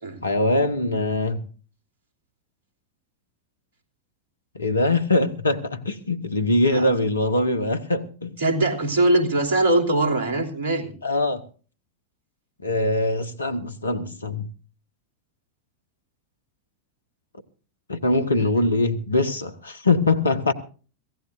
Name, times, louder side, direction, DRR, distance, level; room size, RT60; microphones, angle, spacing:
voice 1, 0.2-1.5 4.5-8.4 11.0-11.4 12.6-14.5 17.9-20.5, left 2 dB, 75° left, 1.3 m, -22 dB
voice 2, 8.4-10.9, right 2 dB, 55° right, 3.3 m, -21 dB
25.0 x 16.0 x 2.6 m
figure-of-eight pair, 90°, 0 cm